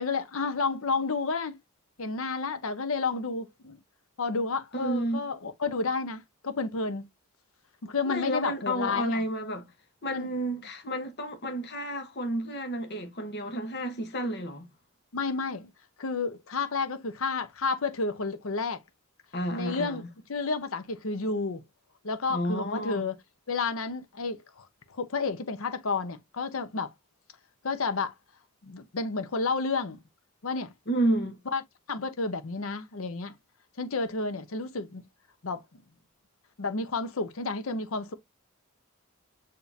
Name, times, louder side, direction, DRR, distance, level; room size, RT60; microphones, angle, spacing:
voice 1, 0.0-1.6 2.0-3.8 4.2-7.1 7.8-9.2 10.1-10.3 15.1-15.7 16.0-18.8 19.5-20.0 20.3-21.6 22.0-23.2 23.5-26.9 27.6-28.1 28.6-30.0 30.4-30.7 31.5-31.6 31.9-33.3 33.8-35.1 35.4-35.8 36.6-38.1, left 4 dB, 65° left, 0.7 m, -31 dB
voice 2, 4.7-5.2 8.1-9.7 10.0-14.7 19.3-20.1 22.3-23.0 30.9-31.4, right 1 dB, 50° left, 1.1 m, -31 dB
7.0 x 2.8 x 2.7 m
head